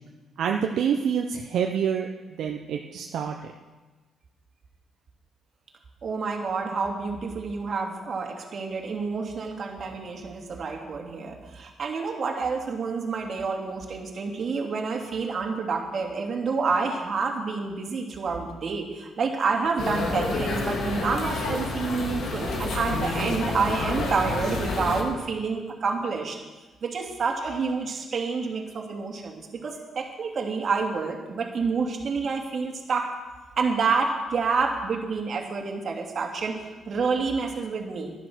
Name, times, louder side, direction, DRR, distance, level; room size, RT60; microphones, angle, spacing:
voice 1, 0.4-3.5, right 7 dB, 70° right, 2 dB, 0.9 m, -27 dB
voice 2, 6.0-26.4 26.8-33.1 33.6-38.1, right 4 dB, 50° right, 1 dB, 2.6 m, -28 dB
sound 1, 19.8-25.0, left 3 dB, 65° left, 2.5 m, -29 dB
11.0 x 10.5 x 6.3 m, 1.2 s
cardioid pair, 90°, 0 cm